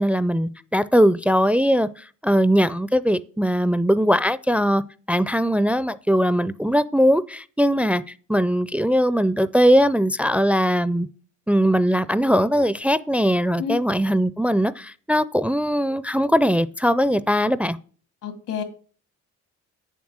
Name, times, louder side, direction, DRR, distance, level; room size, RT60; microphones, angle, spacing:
voice 1, 0.0-4.8 5.1-8.0 8.3-11.1 11.5-17.8, equal, 5° right, 0.4 m, -20 dB
voice 2, 18.2-18.6, left 7 dB, 85° left, 2.3 m, -28 dB
8.3 x 7.4 x 6.3 m
cardioid pair, 90°, 30 cm